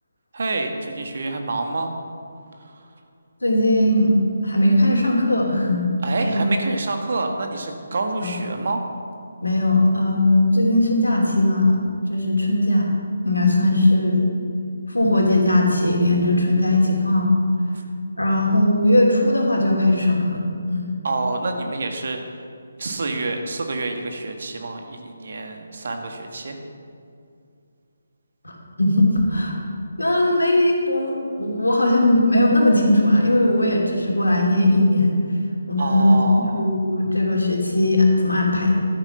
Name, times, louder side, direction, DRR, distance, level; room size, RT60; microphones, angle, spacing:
voice 1, 0.3-1.9 2.6-2.8 6.0-8.8 21.0-22.2 22.8-26.6 35.8-36.7, right 3 dB, 55° right, 4 dB, 1.6 m, -27 dB
voice 2, 3.4-4.2 4.4-5.9 6.2-6.4 8.2-8.3 9.4-12.9 13.2-14.3 14.9-17.3 18.2-20.9 28.4-29.5 30.0-35.2 35.7-36.2 36.5-38.7, left 1 dB, 80° left, 0 dB, 2.9 m, -19 dB
12.0 x 9.0 x 5.9 m, 2.4 s
figure-of-eight pair, 150°, 0 cm